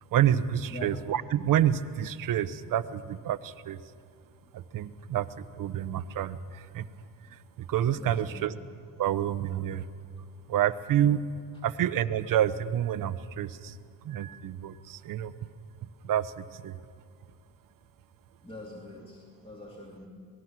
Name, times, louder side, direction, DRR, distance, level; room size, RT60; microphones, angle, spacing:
voice 1, 0.1-3.8 4.5-6.9 7.3-8.5 9.0-9.8 10.5-11.2 11.6-13.7 14.0-15.3 16.0-16.8, right 11 dB, 55° right, 13 dB, 1.0 m, -28 dB
voice 2, 7.9-8.4 18.4-20.1, left 1 dB, 15° left, -3 dB, 3.1 m, -44 dB
26.5 x 20.0 x 6.1 m, 2.1 s
cardioid pair, 120°, 39 cm